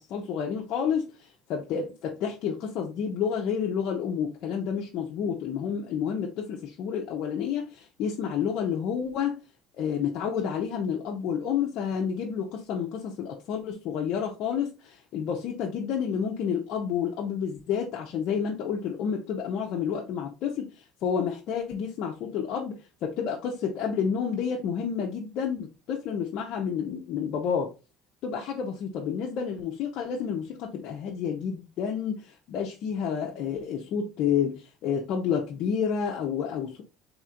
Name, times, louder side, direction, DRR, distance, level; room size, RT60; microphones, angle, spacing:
voice 1, 0.1-1.1 1.5-9.4 9.8-20.7 21.0-27.7 28.2-36.8, left 7 dB, 60° left, 0.8 m, -30 dB
3.5 x 3.1 x 3.8 m
supercardioid pair, 110°, 0 cm